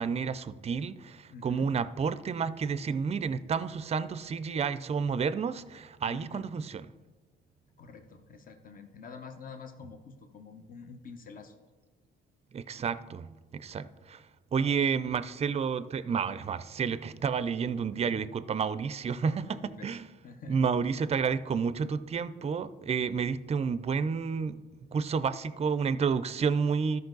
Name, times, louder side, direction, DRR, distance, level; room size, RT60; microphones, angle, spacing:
voice 1, 0.0-6.9 12.5-14.2 14.5-20.1 20.5-24.6 24.9-27.0, right 6 dB, 30° right, 0.4 m, -30 dB
voice 2, 1.3-1.7 6.1-6.5 7.8-11.5 17.9-18.3 19.1-20.0 20.2-20.6, left 5 dB, 45° left, 1.0 m, -47 dB
13.0 x 5.3 x 3.9 m
cardioid pair, 90°, 20 cm